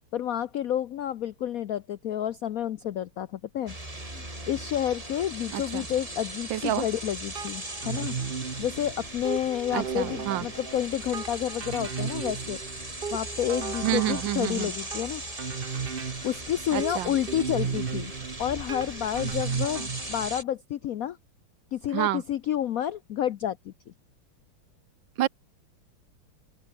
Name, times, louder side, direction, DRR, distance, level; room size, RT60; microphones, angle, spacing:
voice 1, 0.1-3.7 4.1-8.2 8.6-12.6 13.1-15.2 16.2-18.1 18.4-21.2 21.7-23.7, left 11 dB, 80° left, 0.8 m, -30 dB
sound 1, 3.7-20.4, right 1 dB, 15° right, 3.5 m, -39 dB
sound 2, 4.0-14.9, left 2 dB, 25° left, 4.1 m, -57 dB
voice 2, 5.5-5.8 6.5-6.8 9.7-10.4 13.8-14.7 16.7-17.1 21.9-22.2 25.2-25.3, right 13 dB, 75° right, 1.3 m, -28 dB
sound 3, 7.3-20.3, right 6 dB, 35° right, 0.9 m, -35 dB
open air
omnidirectional pair, 2.3 m